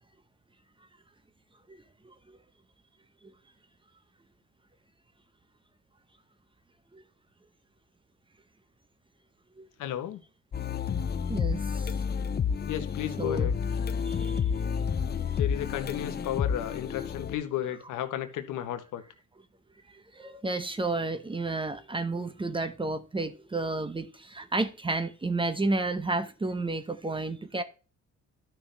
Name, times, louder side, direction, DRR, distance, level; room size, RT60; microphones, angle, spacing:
voice 1, 2.0-2.4 6.9-7.0 9.6-9.7 11.3-11.9 13.2-13.5 14.0-14.4 20.1-27.6, right 2 dB, 15° right, 0.8 m, -31 dB
voice 2, 9.8-10.2 12.7-13.5 15.4-19.0, left 11 dB, 85° left, 1.1 m, -33 dB
sound 1, 10.5-17.4, left 7 dB, 35° left, 0.6 m, -30 dB
11.5 x 5.8 x 3.3 m
cardioid pair, 90°, 30 cm